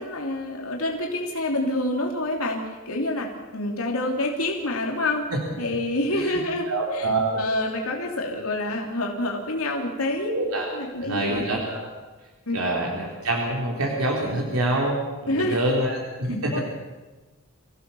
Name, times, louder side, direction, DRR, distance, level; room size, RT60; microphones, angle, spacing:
voice 1, 0.0-5.2 5.6-6.7 6.9-7.1 7.4-10.3 10.7-11.5 12.5-12.6 15.3-15.7 16.5-16.6, left 1 dB, 80° left, 0 dB, 3.0 m, -27 dB
voice 2, 6.7-7.4 10.3-10.7 11.0-11.9 12.5-16.6, right 1 dB, 75° right, -1 dB, 3.7 m, -26 dB
26.5 x 16.0 x 7.0 m, 1.2 s
head